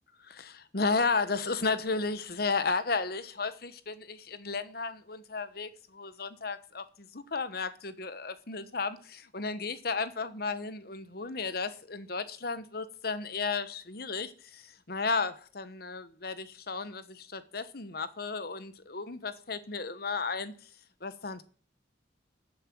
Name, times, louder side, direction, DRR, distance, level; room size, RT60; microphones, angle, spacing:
voice 1, 0.2-20.5 21.0-21.4, left 4 dB, 55° left, 1.1 m, -34 dB
14.0 x 7.6 x 7.5 m
head